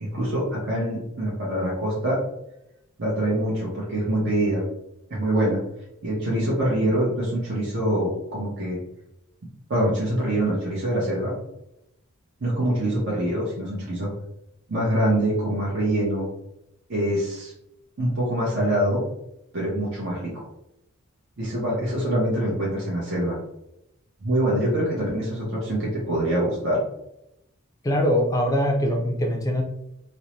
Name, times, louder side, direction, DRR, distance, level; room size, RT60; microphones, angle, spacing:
voice 1, 0.0-2.2 3.0-4.6 5.1-5.6 6.0-8.8 9.7-11.4 12.4-14.1 14.7-16.2 16.9-17.5 18.0-19.0 19.5-20.3 21.4-23.4 24.2-26.8, right 1 dB, 55° right, -6 dB, 0.7 m, -24 dB
voice 2, 27.8-29.6, equal, 15° left, 2 dB, 0.4 m, -22 dB
2.6 x 2.0 x 2.9 m, 0.83 s
head